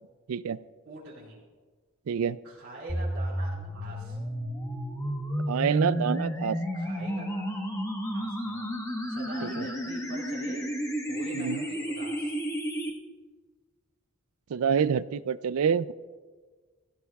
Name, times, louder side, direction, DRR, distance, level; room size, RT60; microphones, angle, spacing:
voice 1, 0.3-0.6 2.1-2.4 5.5-6.6 9.4-9.7 11.3-11.6 14.5-15.9, right 7 dB, 75° right, 17 dB, 0.4 m, -27 dB
voice 2, 0.8-1.4 2.4-4.2 6.7-7.6 8.1-8.7 9.1-10.6 11.1-12.3, right 2 dB, 50° right, -10 dB, 4.3 m, -44 dB
sound 1, 2.9-12.9, equal, 15° left, 1.4 m, -32 dB
22.0 x 15.5 x 2.4 m, 1.5 s
head